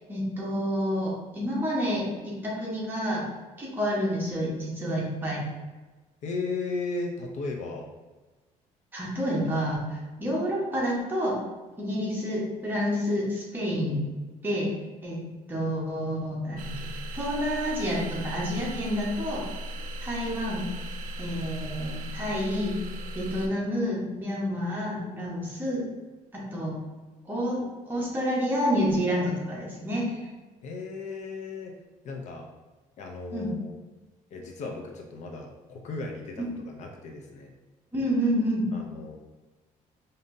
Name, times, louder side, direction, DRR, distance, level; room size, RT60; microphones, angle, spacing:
voice 1, 0.1-2.1 2.4-3.2 3.6-5.4 8.9-11.4 11.8-14.0 14.4-14.7 15.0-16.9 17.1-19.4 20.0-20.7 21.2-22.8 23.1-25.8 26.5-26.7 27.2-30.1 33.3-33.5 36.4-36.5 37.9-38.7, equal, 15° right, -5 dB, 1.1 m, -29 dB
voice 2, 6.2-7.9 30.6-31.8 32.0-32.5 33.0-33.8 34.3-37.5 38.7-39.2, left 3 dB, 55° left, 1 dB, 0.6 m, -36 dB
sound 1, 16.6-23.5, right 1 dB, 70° right, 0.5 m, -37 dB
5.1 x 2.7 x 2.6 m, 1.2 s
cardioid pair, 145°, 14 cm